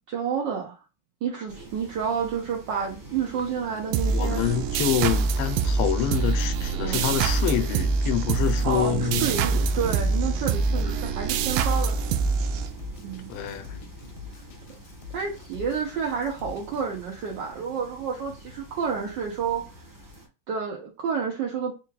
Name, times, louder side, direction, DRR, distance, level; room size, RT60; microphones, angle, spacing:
voice 1, 0.1-0.8 1.2-4.4 5.0-5.1 6.8-7.0 8.6-12.0 13.0-13.3 15.1-19.7 20.5-21.8, right 6 dB, 65° right, 1.3 m, -30 dB
sound 1, 1.5-20.3, equal, 30° right, 0.4 m, -42 dB
sound 2, 3.9-13.2, right 4 dB, 80° right, 1.4 m, -25 dB
voice 2, 4.1-9.3 13.3-13.8, left 10 dB, 80° left, 1.5 m, -27 dB
Drum kit, 11.4-16.8, left 7 dB, 60° left, 1.2 m, -45 dB
4.6 x 3.0 x 2.3 m
omnidirectional pair, 2.4 m